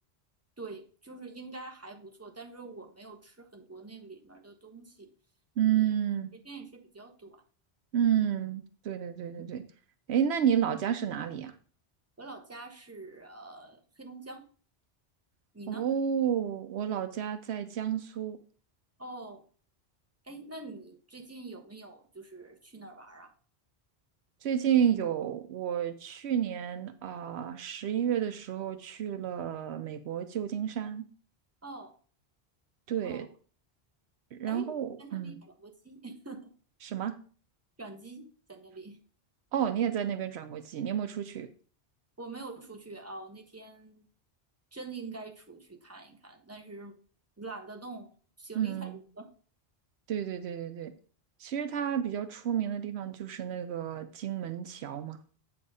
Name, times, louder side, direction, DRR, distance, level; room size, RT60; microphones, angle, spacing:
voice 1, 0.6-5.1 5.8-5.9 6.3-7.4 9.4-9.5 12.2-14.4 15.5-15.9 19.0-19.4 20.2-23.3 31.6-31.9 33.0-33.3 34.4-36.5 37.8-39.0 42.2-44.1 44.7-47.0 47.4-49.3, right 3 dB, 15° right, 3 dB, 1.0 m, -45 dB
voice 2, 5.6-6.3 7.9-9.6 10.1-11.6 15.7-18.4 24.4-31.1 32.9-33.3 34.3-35.4 36.8-37.1 39.5-41.5 48.5-49.0 50.1-50.9 51.4-55.2, right 9 dB, 75° right, 11 dB, 0.9 m, -31 dB
8.1 x 4.8 x 4.8 m, 0.42 s
omnidirectional pair, 1.1 m